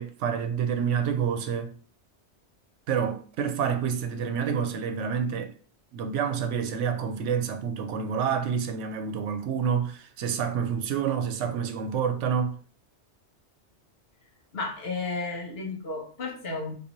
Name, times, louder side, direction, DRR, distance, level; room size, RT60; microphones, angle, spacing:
voice 1, 0.0-1.7 2.9-5.5 5.9-12.6, right 7 dB, 85° right, 0.9 m, -28 dB
voice 2, 14.5-16.7, left 3 dB, 60° left, 1.2 m, -33 dB
3.5 x 2.6 x 2.9 m
omnidirectional pair, 1.2 m